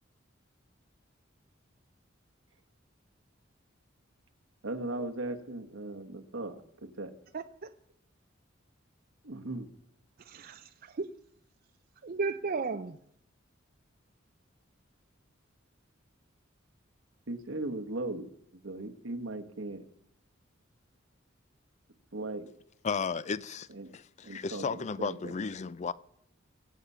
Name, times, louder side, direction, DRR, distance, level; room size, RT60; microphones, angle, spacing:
voice 1, 4.6-7.1 9.2-9.7 17.3-18.3 18.6-19.8 22.1-22.5 23.7-23.9 24.2-25.3, right 2 dB, 75° right, 1.4 m, -38 dB
voice 2, 7.3-7.7 10.3-11.1 12.0-13.0, right 4 dB, 50° right, 0.5 m, -35 dB
voice 3, 22.8-23.7 23.9-25.9, left 5 dB, 35° left, 0.4 m, -34 dB
23.0 x 8.4 x 5.6 m
head